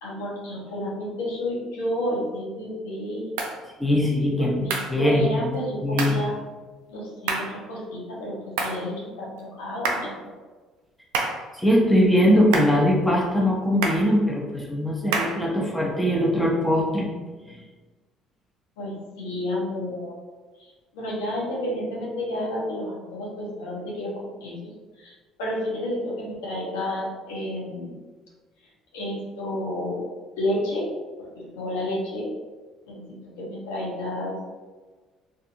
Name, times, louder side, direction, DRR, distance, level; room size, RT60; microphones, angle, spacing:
voice 1, 0.0-3.3 4.4-6.3 6.9-10.3 18.8-20.2 20.6-27.9 28.9-30.0 30.4-30.9 31.2-32.3 32.9-34.6, left 1 dB, 85° left, -4 dB, 0.7 m, -31 dB
sound 1, 3.4-3.6 4.7-5.0 6.0-6.2 7.3-7.6 8.6-8.8 9.8-10.2 11.1-11.5 12.5-12.8 13.8-14.1 15.1-15.4, right 4 dB, 80° right, 0.4 m, -27 dB
voice 2, 3.8-6.2 11.6-17.1, equal, 5° left, -2 dB, 0.7 m, -21 dB
2.6 x 2.5 x 2.5 m, 1.3 s
hypercardioid pair, 65°, 0 cm